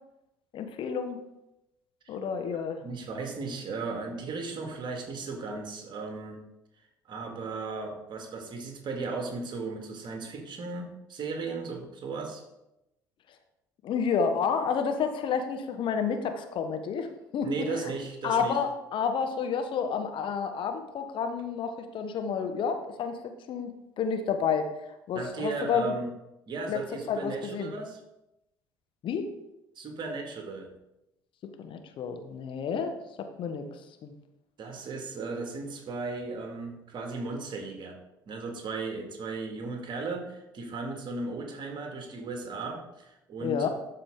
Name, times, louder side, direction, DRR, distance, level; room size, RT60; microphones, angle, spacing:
voice 1, 0.5-1.2 2.1-2.8 13.8-17.7 18.2-24.7 25.1-26.0 26.7-26.8 27.1-27.7 29.0-29.3 31.6-33.7 34.0-34.1 43.4-43.7, left 6 dB, 50° left, 7 dB, 1.0 m, -30 dB
voice 2, 2.8-6.4 7.1-12.4 17.4-18.6 25.1-26.1 26.5-28.0 29.8-30.7 34.6-38.0 38.3-43.7, right 3 dB, 45° right, 3 dB, 1.9 m, -36 dB
12.5 x 4.9 x 3.7 m, 0.90 s
figure-of-eight pair, 55°, 11 cm